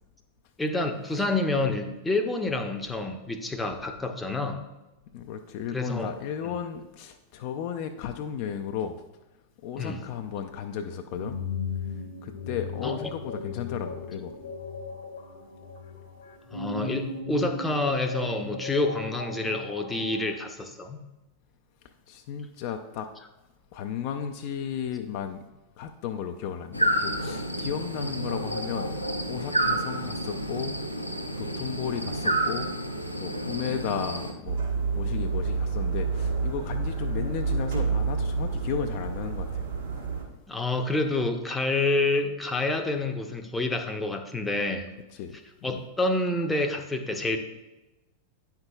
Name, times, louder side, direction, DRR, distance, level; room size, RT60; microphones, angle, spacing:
voice 1, 0.6-4.6 5.7-6.1 9.8-10.0 12.8-13.0 16.5-21.0 40.5-44.9 45.6-47.4, left 2 dB, 10° left, 5 dB, 0.7 m, -28 dB
voice 2, 5.1-9.0 9.6-11.4 11.8-11.9 12.2-14.5 22.1-23.1 23.7-25.4 25.8-28.9 29.3-30.8 31.4-32.7 33.2-34.6 34.9-39.7 45.2-45.8, left 8 dB, 45° left, 6 dB, 0.4 m, -34 dB
sound 1, 9.8-20.4, left 3 dB, 65° left, 1.0 m, -37 dB
sound 2, 26.7-34.3, right 1 dB, 90° left, 0.6 m, -29 dB
sound 3, 34.4-40.2, right 4 dB, 65° right, 1.5 m, -28 dB
9.4 x 5.8 x 2.3 m, 1.0 s
figure-of-eight pair, 90°, 0 cm